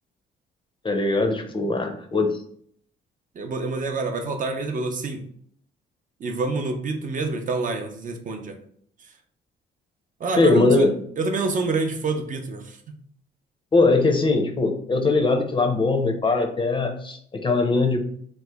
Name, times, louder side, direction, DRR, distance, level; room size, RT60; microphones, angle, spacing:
voice 1, 0.8-2.4 10.4-10.9 13.7-18.1, left 3 dB, 25° left, 3 dB, 0.5 m, -21 dB
voice 2, 3.4-5.2 6.2-8.6 10.2-10.8 11.2-12.8, right 3 dB, 40° right, 4 dB, 0.5 m, -27 dB
3.0 x 2.1 x 3.3 m, 0.63 s
cardioid pair, 90°, 20 cm